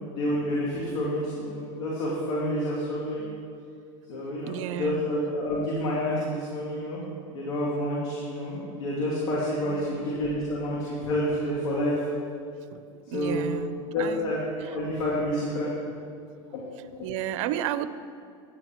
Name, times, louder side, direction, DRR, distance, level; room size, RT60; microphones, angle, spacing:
voice 1, 0.0-3.3 4.1-7.0 7.3-11.9 13.1-13.5 13.9-14.4 14.6-15.7 16.5-16.6, left 1 dB, 80° left, -6 dB, 2.5 m, -29 dB
voice 2, 4.4-5.1 9.6-10.2 12.7-14.3 14.6-14.8 17.0-17.9, right 12 dB, 65° right, 13 dB, 0.6 m, -33 dB
10.0 x 9.7 x 4.5 m, 2.4 s
hypercardioid pair, 105°, 17 cm